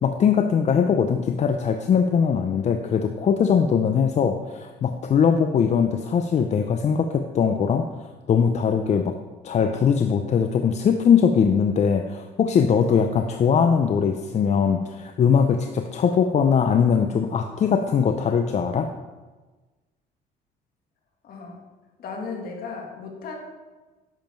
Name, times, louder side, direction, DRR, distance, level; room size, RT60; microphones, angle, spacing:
voice 1, 0.0-7.9 8.3-9.2 9.4-18.9, left 7 dB, 40° left, 6 dB, 0.6 m, -21 dB
voice 2, 21.2-21.6 22.0-23.4, left 4 dB, 60° left, 1 dB, 2.2 m, -35 dB
10.5 x 7.2 x 4.6 m, 1.2 s
cardioid pair, 110°, 17 cm